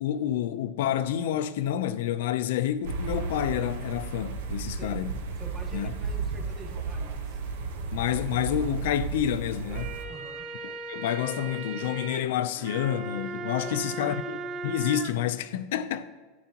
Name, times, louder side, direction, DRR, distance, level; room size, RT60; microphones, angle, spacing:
voice 1, 0.0-5.1 5.7-5.9 7.9-10.0 10.6-14.4 14.6-16.1, left 10 dB, 75° left, 0.6 m, -29 dB
sound 1, 2.8-10.0, right 4 dB, 80° right, 1.2 m, -34 dB
voice 2, 5.4-7.4 10.1-10.5 13.6-14.2, right 3 dB, 20° right, 1.9 m, -46 dB
sound 2, 9.5-15.1, right 3 dB, 45° right, 0.9 m, -37 dB
13.0 x 10.5 x 3.0 m
supercardioid pair, 160°, 0 cm